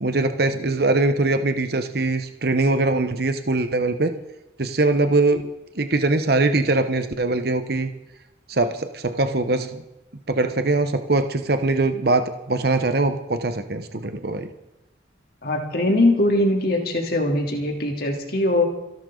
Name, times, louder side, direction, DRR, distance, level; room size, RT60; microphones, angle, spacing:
voice 1, 0.0-4.2 4.6-7.9 8.5-9.8 10.3-14.5, right 2 dB, 55° right, 8 dB, 1.1 m, -22 dB
voice 2, 15.4-18.6, left 1 dB, 55° left, 1 dB, 3.3 m, -21 dB
28.5 x 12.0 x 3.9 m, 0.96 s
head